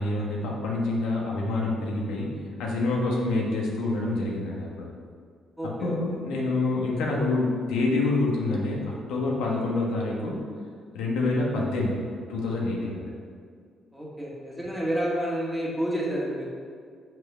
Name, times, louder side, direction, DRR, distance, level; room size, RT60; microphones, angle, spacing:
voice 1, 0.0-2.3 2.6-4.9 5.6-10.4 10.9-12.0 12.3-13.1, left 2 dB, 90° left, -2 dB, 1.5 m, -27 dB
voice 2, 5.6-6.0 13.9-16.5, equal, 5° right, -5 dB, 1.8 m, -29 dB
6.0 x 5.3 x 5.6 m, 2.1 s
cardioid pair, 90°, 0 cm